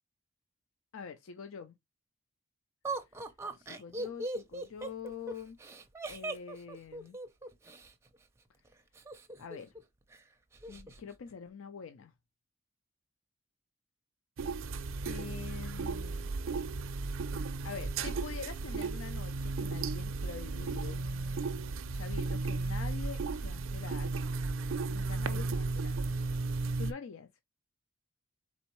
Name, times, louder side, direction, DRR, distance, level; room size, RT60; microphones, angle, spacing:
voice 1, 0.9-1.8 3.5-5.6 6.1-7.2 9.4-9.7 10.7-12.1 15.0-16.3 17.6-21.0 21.9-24.1 24.9-26.0 26.8-27.3, left 6 dB, 75° left, 0.5 m, -45 dB
Laughter, 2.8-7.9 8.9-9.8 10.1-10.2 10.5-11.0, right 2 dB, 15° right, 0.4 m, -39 dB
sound 1, 14.4-26.9, right 3 dB, 70° right, 0.4 m, -34 dB
4.2 x 3.5 x 3.0 m
head